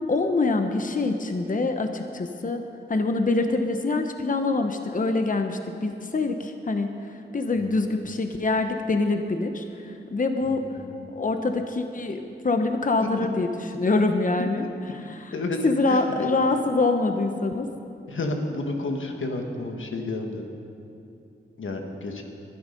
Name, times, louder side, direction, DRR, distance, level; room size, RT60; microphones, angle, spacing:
voice 1, 0.1-2.6 2.9-10.6 11.1-13.5 13.7-14.6 15.6-17.7, left 3 dB, 40° left, 6 dB, 1.0 m, -25 dB
voice 2, 10.4-11.1 13.0-13.3 14.6-14.7 15.3-15.6 15.8-16.3 18.1-20.4 21.6-22.2, left 2 dB, 90° left, 3 dB, 1.6 m, -31 dB
21.0 x 12.0 x 5.3 m, 2.7 s
wide cardioid pair, 75°, 20 cm